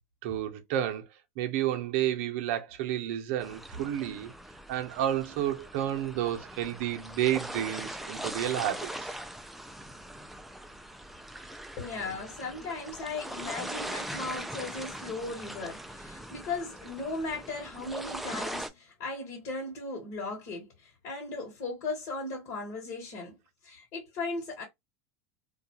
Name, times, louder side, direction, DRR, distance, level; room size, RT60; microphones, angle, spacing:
voice 1, 0.2-1.1 1.4-4.3 4.7-9.2, right 12 dB, 65° right, 0.7 m, -31 dB
sound 1, 3.4-18.7, right 1 dB, ahead, 0.4 m, -41 dB
voice 2, 11.8-23.4 23.6-24.6, left 3 dB, 55° left, 1.3 m, -37 dB
2.3 x 2.3 x 2.8 m
supercardioid pair, 115°, 8 cm